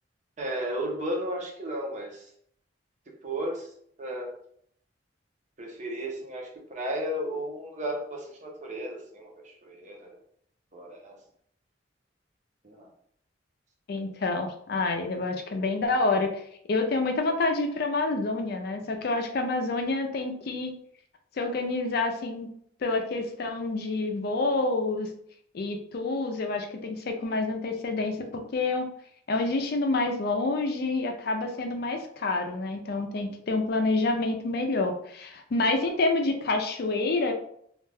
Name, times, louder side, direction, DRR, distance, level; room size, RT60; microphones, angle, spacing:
voice 1, 0.4-2.3 3.2-3.7 4.0-4.3 5.6-10.1 10.7-11.2 12.6-12.9, right 1 dB, 40° right, 0 dB, 0.6 m, -34 dB
voice 2, 13.9-16.4 16.7-20.7 21.4-22.5 22.8-25.1 25.5-28.3 28.5-28.8 29.3-37.3, left 3 dB, 55° left, 4 dB, 0.4 m, -28 dB
2.4 x 2.2 x 3.3 m, 0.67 s
head